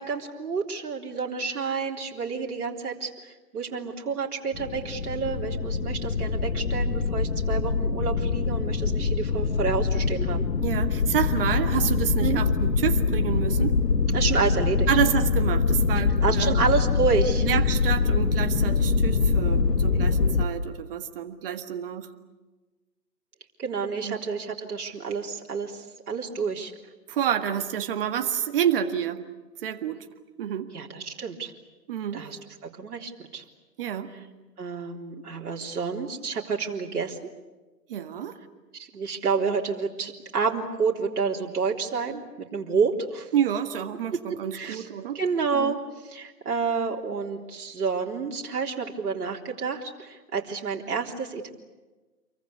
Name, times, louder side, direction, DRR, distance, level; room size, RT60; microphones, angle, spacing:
voice 1, 0.0-10.5 12.2-12.4 14.1-14.9 16.2-17.5 23.6-26.7 30.7-31.5 32.1-32.4 32.8-33.4 34.6-37.2 38.7-42.2 42.5-43.3 44.5-44.9 45.1-45.8 46.0-51.5, right 5 dB, 65° right, -1 dB, 3.8 m, -29 dB
sound 1, 4.5-20.5, left 4 dB, 75° left, 1.8 m, -24 dB
voice 2, 10.6-13.7 14.9-16.6 17.4-22.1 24.0-24.2 27.1-29.2 29.6-30.0 30.4-30.7 31.9-32.3 33.8-34.1 37.9-38.4 43.3-45.2 45.5-45.8, right 9 dB, 35° right, 7 dB, 1.8 m, -28 dB
28.0 x 23.5 x 8.4 m, 1.2 s
hypercardioid pair, 150°, 49 cm